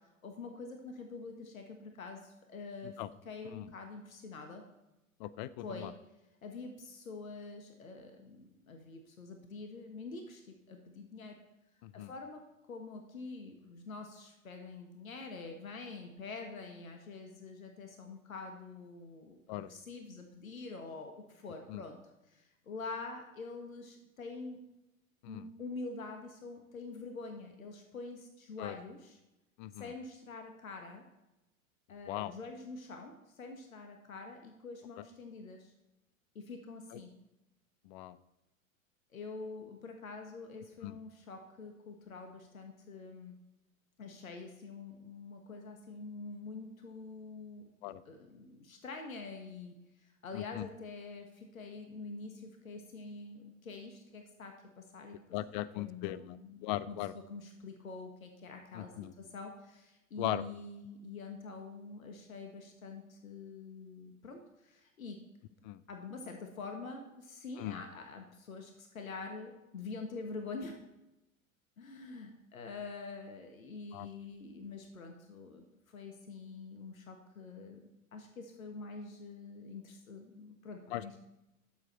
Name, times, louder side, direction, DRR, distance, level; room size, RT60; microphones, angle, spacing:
voice 1, 0.2-3.0 3.2-4.6 5.6-5.9 6.4-11.4 11.9-12.4 12.7-22.0 22.3-24.6 25.3-29.2 29.7-31.0 31.9-35.7 36.3-37.1 39.1-43.4 44.0-49.7 50.0-55.2 55.5-58.9 59.2-65.2 65.9-70.8 71.8-81.2, left 3 dB, 75° left, 4 dB, 1.5 m, -46 dB
voice 2, 5.2-5.9 11.8-12.1 19.5-19.7 21.7-21.8 25.2-25.4 28.6-28.8 29.6-29.9 32.1-32.3 36.9-37.0 37.9-38.2 40.8-41.0 47.8-48.0 50.3-50.7 55.3-56.4 56.6-57.1 58.7-59.1 60.2-60.4 65.6-65.8 67.6-67.8 73.9-74.1 80.9-81.2, left 14 dB, 35° left, 17 dB, 0.5 m, -38 dB
12.0 x 7.5 x 4.4 m, 0.96 s
figure-of-eight pair, 90°, 42 cm